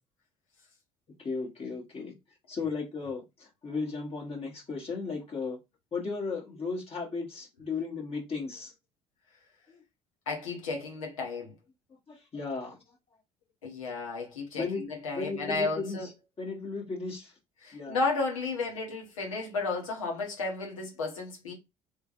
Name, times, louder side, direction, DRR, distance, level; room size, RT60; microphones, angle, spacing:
voice 1, 1.2-2.1 2.5-5.6 5.9-8.7 12.1-12.8 14.5-14.8 15.1-16.1 16.4-17.3 17.7-18.0, left 4 dB, 35° left, 1.3 m, -35 dB
voice 2, 10.3-11.5 13.6-16.1 17.6-21.5, left 3 dB, 80° left, 1.1 m, -33 dB
3.3 x 3.2 x 2.5 m
figure-of-eight pair, 55°, 17 cm